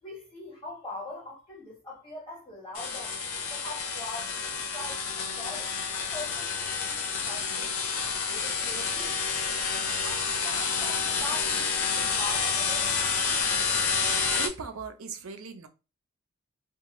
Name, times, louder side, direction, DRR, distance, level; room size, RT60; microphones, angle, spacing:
voice 1, 0.0-4.4 4.7-7.8 8.3-9.2 10.0-12.9, left 2 dB, 25° left, 1.3 m, -42 dB
sound 1, 2.7-14.5, left 5 dB, 75° left, 0.6 m, -29 dB
voice 2, 14.3-15.7, right 5 dB, 80° right, 0.5 m, -38 dB
2.7 x 2.3 x 3.0 m
head